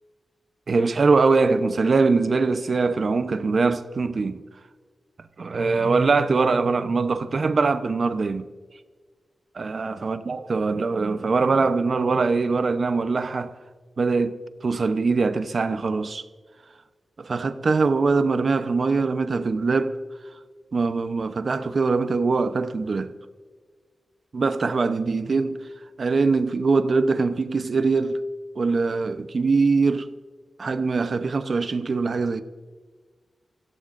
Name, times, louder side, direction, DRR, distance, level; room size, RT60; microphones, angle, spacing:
voice 1, 0.7-4.4 5.4-8.5 9.5-13.5 14.0-14.4 14.6-16.2 17.2-20.0 20.7-23.1 24.3-25.6 26.0-28.2 28.6-30.1 30.6-32.4, right 4 dB, 55° right, 0.8 m, -22 dB
26.5 x 16.0 x 2.6 m
wide cardioid pair, 85°, 0 cm